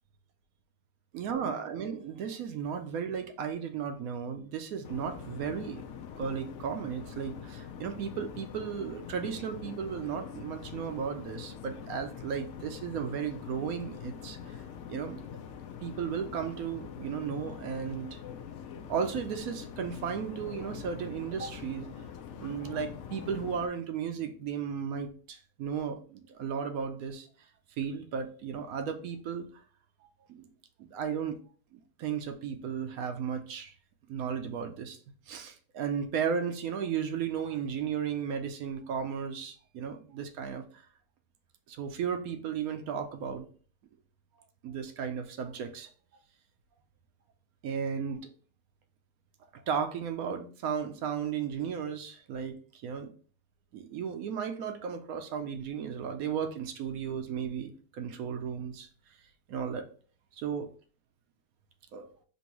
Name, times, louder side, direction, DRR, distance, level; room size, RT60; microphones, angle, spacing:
voice 1, 1.1-5.8 6.2-14.6 14.9-15.2 15.8-18.2 18.9-21.9 22.4-27.3 27.8-29.5 30.3-30.5 30.8-31.4 31.7-33.7 34.1-35.0 35.3-40.8 41.7-43.5 44.6-45.9 47.6-48.3 49.5-53.1 53.7-58.9 59.5-59.9 60.4-60.7 61.9-62.1, right 7 dB, 70° right, 7 dB, 0.9 m, -35 dB
sound 1, 4.8-23.7, left 7 dB, 85° left, 0.6 m, -44 dB
5.3 x 2.7 x 2.9 m, 0.42 s
omnidirectional pair, 1.8 m